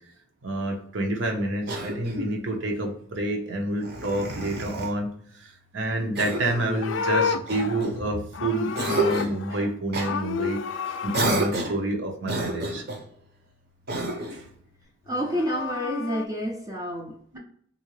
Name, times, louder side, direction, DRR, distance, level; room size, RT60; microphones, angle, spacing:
voice 1, 0.4-10.6 10.9-12.8 14.3-14.5, right 1 dB, 85° right, 0.8 m, -29 dB
Cough, 1.7-2.4 3.8-4.9 6.1-6.7 7.5-8.3 8.7-9.4 9.9-10.1 11.1-11.8 12.2-13.0 13.9-14.4, right 2 dB, 55° right, 0.7 m, -29 dB
Livestock farm animals working animals, 6.3-9.7 10.0-11.3 15.1-16.3, left 6 dB, 85° left, 0.3 m, -30 dB
voice 2, 15.1-17.4, equal, 20° right, 0.4 m, -29 dB
3.6 x 2.6 x 3.0 m
head